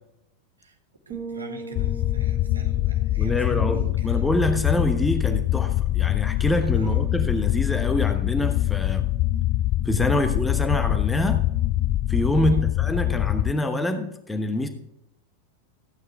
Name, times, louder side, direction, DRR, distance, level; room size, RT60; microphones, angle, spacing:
sound 1, 1.1-4.8, right 3 dB, 30° right, 2.6 m, -41 dB
voice 1, 1.1-4.3 6.8-7.0 12.4-12.6, right 1 dB, 75° right, 3 dB, 2.0 m, -41 dB
sound 2, 1.7-13.5, left 15 dB, 40° left, 0.3 m, -24 dB
voice 2, 3.2-9.1 9.8-11.4 12.1-14.7, left 1 dB, 10° left, 7 dB, 1.1 m, -25 dB
14.5 x 9.2 x 3.4 m, 0.80 s
figure-of-eight pair, 90°, 0 cm